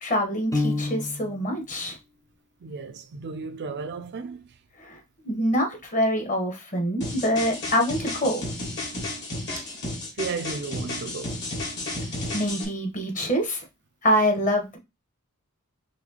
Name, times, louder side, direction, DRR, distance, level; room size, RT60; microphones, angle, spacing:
voice 1, 0.0-2.0 4.8-5.0 5.2-8.4 12.3-13.6 14.0-14.8, equal, 35° left, 1.0 m, -25 dB
Piano, 0.5-1.5, left 2 dB, 15° left, 0.5 m, -28 dB
voice 2, 2.6-4.5 9.6-9.7 10.0-11.4, right 4 dB, 50° right, 0.4 m, -34 dB
sound 1, 7.0-12.6, left 2 dB, 50° left, 1.4 m, -33 dB
4.2 x 3.1 x 2.9 m
head